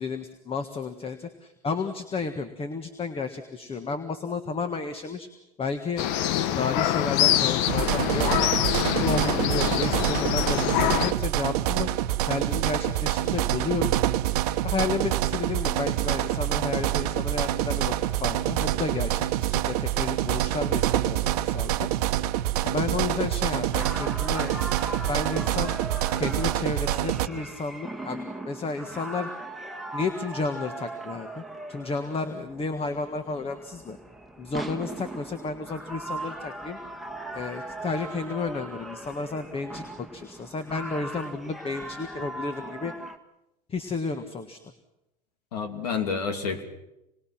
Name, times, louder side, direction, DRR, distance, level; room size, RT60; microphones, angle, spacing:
voice 1, 0.0-5.3 5.6-6.0 6.5-8.5 8.9-11.9 12.3-13.9 14.6-21.9 22.6-24.5 25.1-25.8 26.1-29.3 29.9-34.0 34.4-36.8 37.3-42.9 43.7-44.6, left 4 dB, 30° left, 9 dB, 1.7 m, -32 dB
sound 1, 6.0-11.1, left 12 dB, 65° left, 1.1 m, -25 dB
sound 2, 7.7-27.3, right 13 dB, 80° right, 1.0 m, -26 dB
sound 3, 23.7-43.2, right 2 dB, ahead, 1.7 m, -39 dB
voice 2, 45.5-46.6, left 5 dB, 90° left, 7 dB, 2.6 m, -29 dB
26.5 x 21.0 x 6.0 m, 0.88 s
hypercardioid pair, 90°, 20 cm